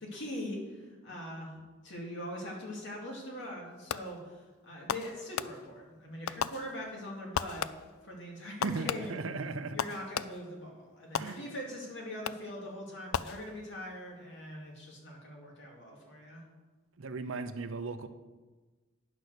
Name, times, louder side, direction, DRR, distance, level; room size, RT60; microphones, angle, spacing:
voice 1, 0.0-7.7 8.0-9.2 9.7-16.4, left 1 dB, 60° left, -2 dB, 2.6 m, -42 dB
Fireworks, 3.9-4.3 4.9-5.9 6.3-7.0 7.3-8.1 8.6-10.6 11.2-11.8 12.3-12.7 13.1-13.9, left 8 dB, 90° left, 0.4 m, -37 dB
voice 2, 8.6-9.8 11.2-11.4 17.0-18.1, right 4 dB, 75° right, 10 dB, 0.6 m, -37 dB
9.7 x 6.2 x 6.6 m, 1.3 s
head